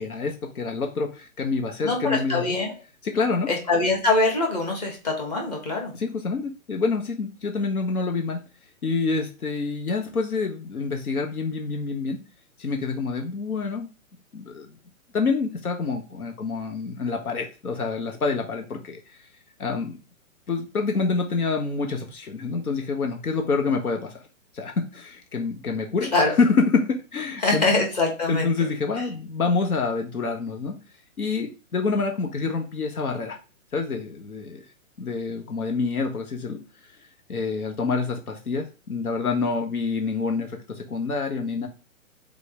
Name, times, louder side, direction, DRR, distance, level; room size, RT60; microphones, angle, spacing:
voice 1, 0.0-2.6 3.0-3.5 5.9-8.4 8.8-12.2 12.6-13.9 14.3-14.7 15.1-19.2 19.6-20.0 20.5-24.2 24.5-27.7 28.3-30.8 31.2-33.4 33.7-34.6 35.0-36.6 37.3-41.7, left 4 dB, 80° left, 3 dB, 1.6 m, -27 dB
voice 2, 1.8-2.7 3.5-5.9 26.1-26.3 27.4-28.5, left 3 dB, 30° left, 0 dB, 1.8 m, -23 dB
5.3 x 4.1 x 5.1 m, 0.33 s
hypercardioid pair, 180°, 43 cm